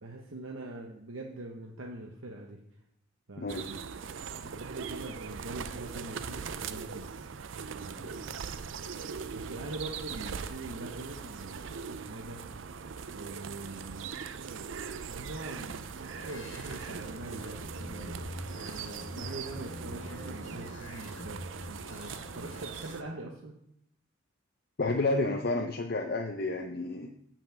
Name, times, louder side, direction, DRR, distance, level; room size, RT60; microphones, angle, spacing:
voice 1, 0.0-2.6 3.3-3.8 4.4-7.1 7.7-8.6 9.3-12.4 13.1-14.2 15.1-23.6, right 2 dB, 90° right, 0 dB, 1.0 m, -43 dB
sound 1, 3.5-23.0, right 6 dB, 70° right, 0.5 m, -41 dB
sound 2, 16.1-22.9, left 1 dB, 65° left, 1.9 m, -45 dB
voice 2, 24.8-27.1, left 2 dB, 50° left, 2 dB, 0.7 m, -30 dB
7.0 x 6.0 x 7.6 m, 0.74 s
head